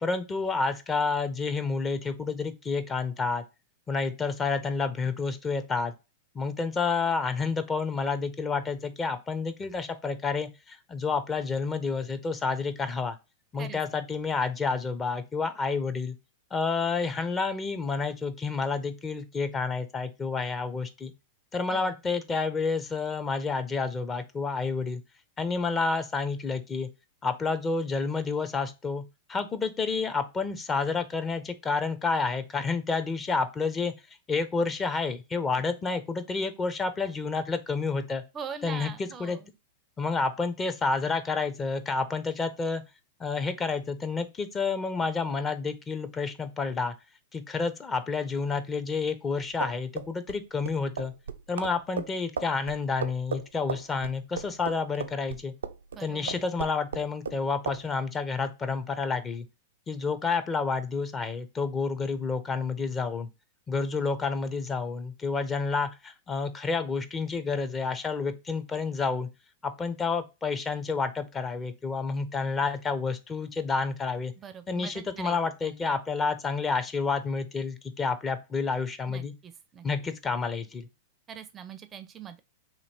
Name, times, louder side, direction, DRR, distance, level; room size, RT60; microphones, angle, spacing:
voice 1, 0.0-3.4 3.9-5.9 6.3-13.2 13.5-16.2 16.5-21.1 21.5-25.0 25.4-26.9 27.2-29.0 29.3-33.9 34.3-38.2 38.6-39.4 40.0-42.8 43.2-46.9 47.3-51.1 51.5-55.5 56.0-59.5 59.9-63.3 63.7-69.3 69.6-74.3 74.7-79.3 79.8-80.9, left 4 dB, 20° left, 0.5 m, -29 dB
voice 2, 38.3-39.5 55.9-56.5 74.4-75.9 79.1-80.1 81.3-82.4, right 7 dB, 25° right, 0.4 m, -42 dB
sound 1, 49.4-56.0 56.3-57.4 57.7-57.8, right 5 dB, 85° right, 0.4 m, -35 dB
2.9 x 2.9 x 4.2 m
hypercardioid pair, 115°, 0 cm